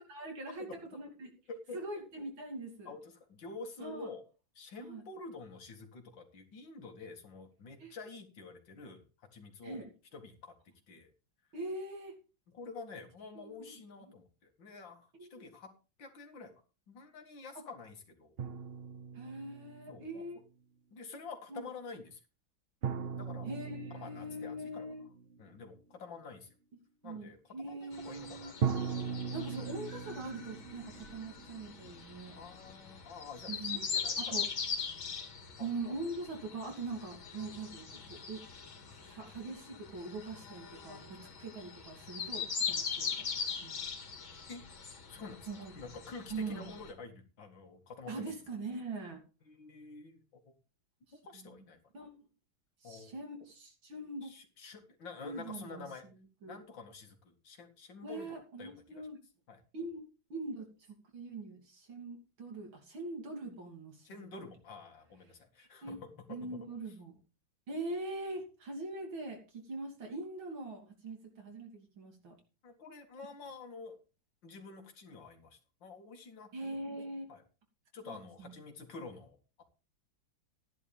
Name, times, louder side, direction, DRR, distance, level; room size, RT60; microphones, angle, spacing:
voice 1, 0.1-1.3 1.7-2.9 3.8-4.1 4.8-5.0 7.8-7.9 9.6-9.9 11.5-12.2 13.4-13.7 15.2-15.3 19.1-20.4 21.5-21.6 23.5-25.0 27.0-28.5 29.3-32.4 33.5-33.9 34.2-34.5 35.6-38.4 38.9-43.3 43.6-43.8 45.5-45.7 46.3-46.7 48.1-49.2 51.3-51.6 51.9-52.2 52.8-54.3 55.2-55.9 56.4-56.6 58.0-59.2 59.7-60.0 60.3-64.5 65.8-66.0 66.3-67.2 67.7-72.4 76.5-77.3 78.1-78.5, right 2 dB, 85° right, 2 dB, 3.8 m, -42 dB
voice 2, 1.5-1.8 2.9-4.2 4.6-9.0 9.3-10.5 10.9-11.1 12.5-15.7 16.0-16.5 16.9-18.3 19.9-20.3 20.9-22.2 23.2-23.6 23.9-24.9 25.4-26.5 27.0-27.4 27.7-28.5 32.4-34.4 35.6-35.7 44.5-44.6 45.1-45.5 45.8-48.2 49.5-50.5 51.1-51.8 52.8-53.1 54.2-56.1 56.4-59.1 59.5-59.6 64.0-66.6 72.6-74.0 74.4-76.7 77.3-77.4 77.9-79.6, left 4 dB, 70° left, 5 dB, 2.6 m, -48 dB
sound 1, 18.4-20.2 22.8-25.7 28.6-32.4, right 6 dB, 70° right, 0.5 m, -39 dB
sound 2, 27.9-46.9, left 6 dB, 90° left, 2.9 m, -41 dB
14.0 x 10.5 x 3.5 m, 0.33 s
omnidirectional pair, 2.1 m